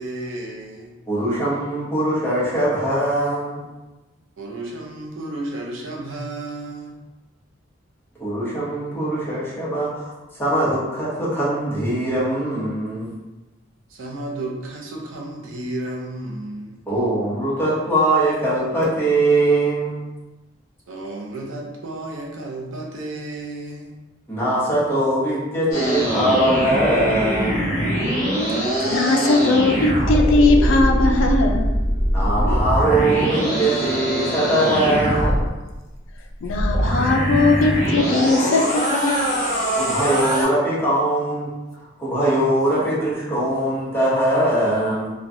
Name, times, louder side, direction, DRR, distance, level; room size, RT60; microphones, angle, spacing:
voice 1, 0.0-0.9 4.4-6.9 13.9-16.8 20.9-23.9, right 2 dB, 90° right, -1 dB, 0.6 m, -32 dB
voice 2, 1.1-3.6 8.2-10.1 10.4-13.1 16.9-20.0 24.3-27.7 32.1-35.4 39.8-41.5 42.0-45.1, right 1 dB, 10° left, -9 dB, 0.9 m, -21 dB
sound 1, 25.7-35.5 36.4-40.4, equal, 40° left, 1.0 m, -22 dB
voice 3, 28.6-31.7 33.6-33.8 36.4-39.5, left 3 dB, 75° left, 3 dB, 0.4 m, -19 dB
3.0 x 2.2 x 2.6 m, 1.1 s
head